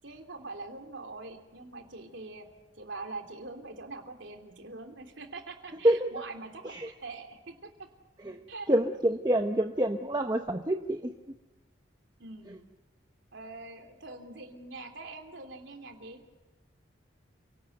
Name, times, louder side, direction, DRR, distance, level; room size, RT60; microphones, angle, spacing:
voice 1, 0.0-2.5 2.8-7.9 8.5-8.7 12.2-12.5 13.3-16.2, right 3 dB, 80° right, 4 dB, 3.1 m, -43 dB
voice 2, 8.7-11.1, right 1 dB, 20° right, 5 dB, 0.9 m, -27 dB
28.5 x 18.0 x 8.0 m, 1.1 s
head